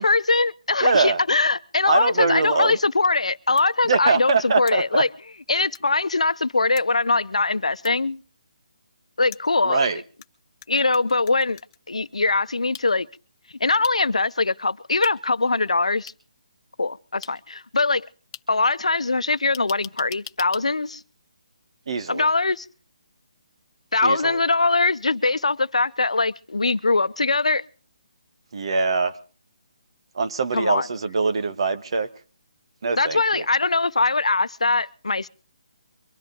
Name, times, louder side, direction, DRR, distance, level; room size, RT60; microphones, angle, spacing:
voice 1, 0.0-5.1 5.5-8.2 9.2-9.8 10.7-11.6 11.9-13.1 13.6-16.1 16.8-18.1 18.5-21.0 22.1-22.7 23.9-27.6 30.5-30.9 33.0-35.3, left 3 dB, 90° left, 0.7 m, -22 dB
voice 2, 0.8-1.2 1.9-2.8 3.8-5.0 9.6-10.0 21.9-22.3 24.0-24.4 28.5-29.2 30.1-32.1 32.8-33.5, right 4 dB, 55° right, 1.5 m, -23 dB
sound 1, 3.6-3.7 4.7-4.8 5.7-5.8 6.8-6.9 7.8-7.9 9.3-10.3 10.6-11.8 12.7-12.9 13.8-13.9 15.0-15.1 16.1-16.2 17.2-17.3 18.3-18.4 19.5-20.6, left 10 dB, 25° left, 0.9 m, -40 dB
23.5 x 11.0 x 5.2 m
figure-of-eight pair, 155°, 3 cm